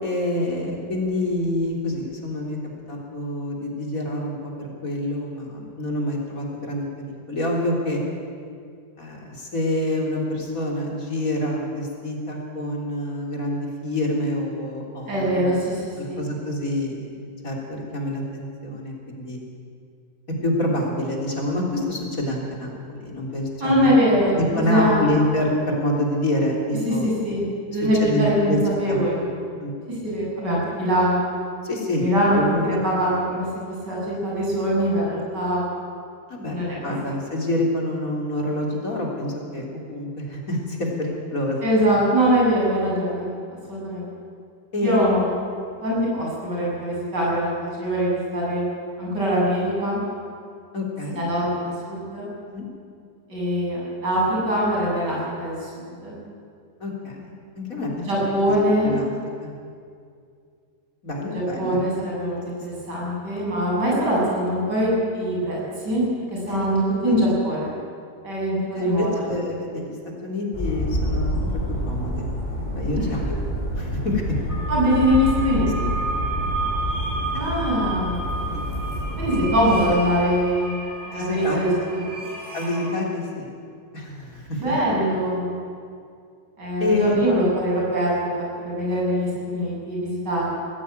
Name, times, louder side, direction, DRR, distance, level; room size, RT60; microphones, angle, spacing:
voice 1, 0.0-2.6 2.9-8.0 9.0-15.5 16.0-19.4 20.4-23.9 24.3-27.1 28.0-28.6 28.9-29.0 29.6-29.7 31.6-32.1 32.3-32.6 36.3-36.6 36.8-41.6 44.7-45.2 50.7-51.2 52.5-52.7 56.8-58.0 58.5-59.1 59.4-59.5 61.0-61.8 66.5-66.7 67.0-67.2 68.8-70.0 70.2-72.2 72.7-73.2 73.8-74.2 77.3-77.6 78.5-78.6 81.1-81.6 82.5-83.5 83.9-84.7 86.8-87.4, left 1 dB, 50° left, -1 dB, 3.8 m, -27 dB
voice 2, 15.1-16.2 23.6-25.1 26.8-29.3 30.0-31.2 32.0-35.7 36.5-37.1 41.6-44.1 44.8-45.3 45.8-48.6 49.0-50.0 51.2-51.5 51.8-52.3 53.3-56.2 58.1-58.9 61.3-65.6 65.8-67.7 68.2-69.1 72.9-73.1 74.7-75.9 77.3-78.4 79.2-80.8 81.1-82.0 84.6-85.6 86.6-90.5, equal, 75° right, -5 dB, 7.9 m, -23 dB
sound 1, 70.5-79.9, equal, 25° left, 4.9 m, -28 dB
sound 2, 74.5-82.9, right 3 dB, 10° right, 6.0 m, -32 dB
20.0 x 15.5 x 9.1 m, 2.3 s
omnidirectional pair, 1.9 m